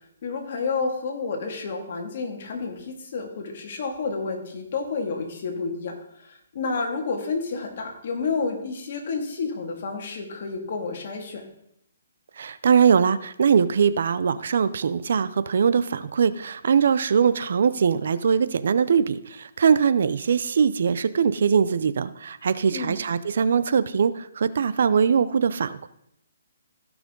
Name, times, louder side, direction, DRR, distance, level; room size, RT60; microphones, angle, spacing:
voice 1, 0.2-11.5 22.7-23.0, left 4 dB, 50° left, 2 dB, 2.2 m, -30 dB
voice 2, 12.4-25.9, right 6 dB, 65° right, 15 dB, 0.6 m, -21 dB
16.0 x 6.1 x 3.8 m, 0.75 s
hypercardioid pair, 160°, 0 cm